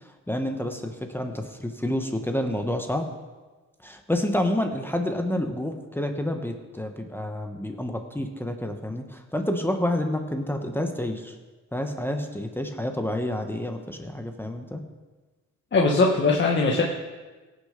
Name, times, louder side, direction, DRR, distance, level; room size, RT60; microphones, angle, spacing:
voice 1, 0.3-3.1 3.8-11.3 11.7-14.8, left 1 dB, 5° left, 5 dB, 1.2 m, -29 dB
voice 2, 15.7-16.8, left 3 dB, 40° left, -2 dB, 1.6 m, -20 dB
17.0 x 6.7 x 5.2 m, 1.3 s
cardioid pair, 90°, 30 cm